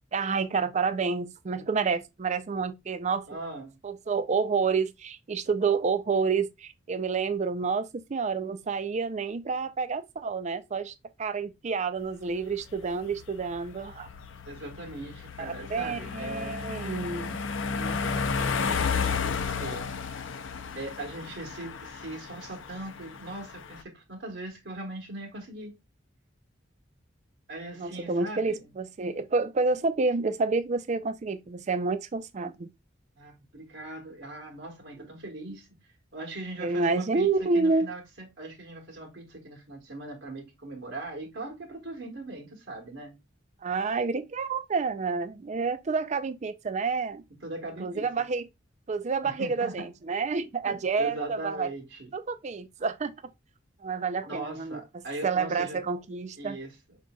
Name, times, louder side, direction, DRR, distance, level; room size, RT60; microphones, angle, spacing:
voice 1, 0.1-3.3 3.8-10.9 11.2-14.1 15.7-17.4 27.8-32.7 35.5-35.6 36.6-37.9 43.6-47.2 47.8-48.5 48.9-51.7 52.1-53.1 53.8-54.8 55.2-56.6, right 4 dB, 35° right, 0.4 m, -29 dB
voice 2, 3.3-3.8 14.5-16.6 17.6-19.9 20.7-25.8 27.5-28.7 33.2-35.7 36.1-37.3 37.5-43.1 47.4-48.3 49.2-49.9 50.6-52.1 54.2-55.8 56.4-57.0, right 2 dB, 70° right, 1.2 m, -40 dB
sound 1, 12.1-23.8, left 5 dB, 70° left, 0.5 m, -33 dB
5.3 x 3.7 x 2.3 m
head